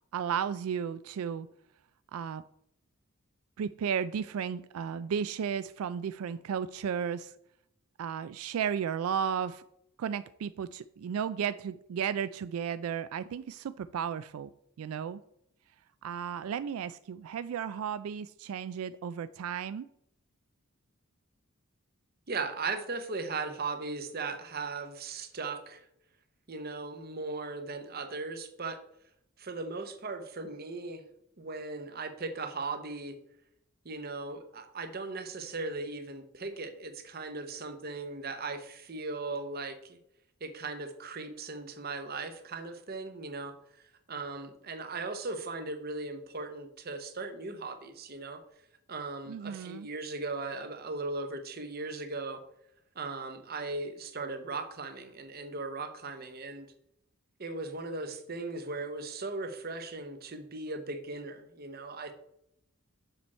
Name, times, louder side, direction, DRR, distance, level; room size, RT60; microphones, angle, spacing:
voice 1, 0.1-1.5 2.1-2.4 3.6-7.3 8.0-9.6 10.0-14.5 14.8-15.2 16.0-19.9 49.3-49.9, right 7 dB, 90° right, 14 dB, 0.3 m, -34 dB
voice 2, 22.3-25.9 26.5-28.8 29.4-31.0 31.4-33.2 33.8-40.0 40.4-43.6 44.1-48.4 48.9-52.4 52.9-56.7 57.4-62.1, right 3 dB, 45° right, 8 dB, 0.9 m, -38 dB
6.9 x 6.1 x 4.3 m, 0.75 s
head